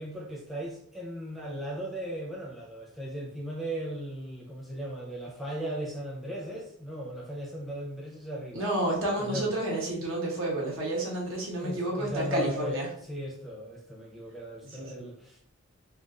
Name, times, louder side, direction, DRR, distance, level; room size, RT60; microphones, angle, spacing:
voice 1, 0.0-8.7 9.2-9.5 11.6-15.5, equal, ahead, -3 dB, 0.6 m, -37 dB
voice 2, 8.5-12.9 14.7-15.1, right 1 dB, 70° right, -2 dB, 1.0 m, -30 dB
2.5 x 2.3 x 3.6 m, 0.64 s
head